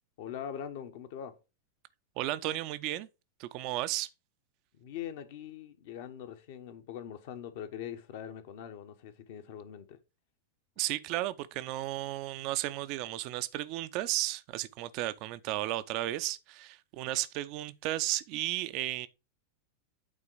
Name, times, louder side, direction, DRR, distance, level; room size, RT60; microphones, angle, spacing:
voice 1, 0.2-1.4 4.7-10.0, left 9 dB, 50° left, 1.1 m, -42 dB
voice 2, 2.2-3.1 3.4-4.1 10.8-19.1, right 15 dB, 40° right, 0.5 m, -34 dB
8.7 x 3.8 x 4.8 m
figure-of-eight pair, 90°, 0 cm